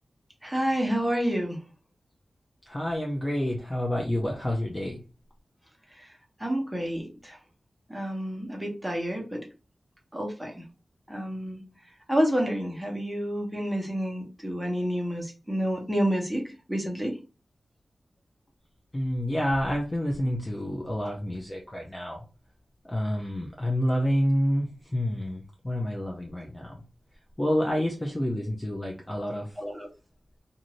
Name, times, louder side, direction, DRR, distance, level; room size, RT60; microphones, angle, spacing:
voice 1, 0.4-1.6 5.9-6.1 6.4-7.4 7.9-9.5 10.1-10.6 11.1-11.6 12.1-17.2 29.6-29.9, equal, ahead, 0 dB, 1.0 m, -29 dB
voice 2, 2.7-5.0 18.9-22.2 22.8-26.8 27.4-29.5, equal, 15° left, -1 dB, 0.5 m, -28 dB
2.6 x 2.5 x 3.0 m, 0.32 s
wide cardioid pair, 110°, 0 cm